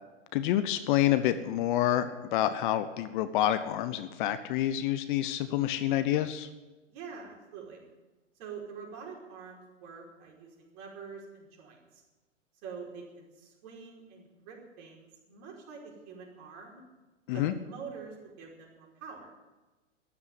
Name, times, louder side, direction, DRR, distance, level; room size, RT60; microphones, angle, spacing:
voice 1, 0.3-6.5 17.3-17.5, left 12 dB, 40° left, 12 dB, 0.9 m, -28 dB
voice 2, 6.9-7.8 8.4-12.0 12.6-16.8 17.3-19.3, right 5 dB, 40° right, -1 dB, 5.1 m, -46 dB
13.5 x 11.0 x 9.4 m, 1.2 s
figure-of-eight pair, 105°, 37 cm